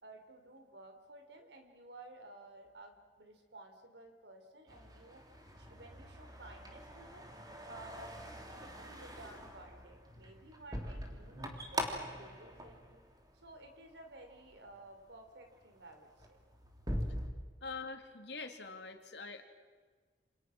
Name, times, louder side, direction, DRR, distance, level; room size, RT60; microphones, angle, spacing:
voice 1, 0.0-5.2 5.6-7.3 7.6-13.0 13.4-16.4, right 2 dB, 70° right, 5 dB, 4.4 m, -54 dB
sound 1, 4.7-13.7 14.1-14.6 15.1-15.3 15.6-17.3, equal, 20° right, 3.3 m, -43 dB
voice 2, 17.6-19.4, left 4 dB, 70° left, 5 dB, 3.0 m, -44 dB
28.5 x 27.5 x 6.3 m, 1.5 s
head